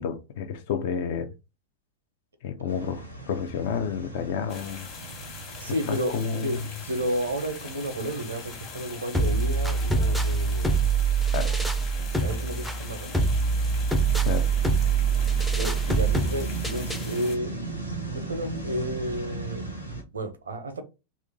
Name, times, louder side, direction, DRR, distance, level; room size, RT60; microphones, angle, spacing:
voice 1, 0.0-1.3 2.4-4.9 5.9-6.6 11.3-11.6 14.2-14.5, left 6 dB, 50° left, 0.6 m, -30 dB
sound 1, 2.7-20.0, right 2 dB, 90° left, 0.9 m, -39 dB
sound 2, 4.5-17.4, left 5 dB, 35° left, 1.1 m, -42 dB
voice 2, 5.6-6.2 6.4-6.6 6.9-10.8 12.2-13.1 15.5-17.6 18.1-19.6 20.1-20.8, right 1 dB, 70° right, 0.7 m, -31 dB
sound 3, 9.1-17.1, right 4 dB, ahead, 0.5 m, -24 dB
3.0 x 2.5 x 3.6 m
figure-of-eight pair, 90°, 0 cm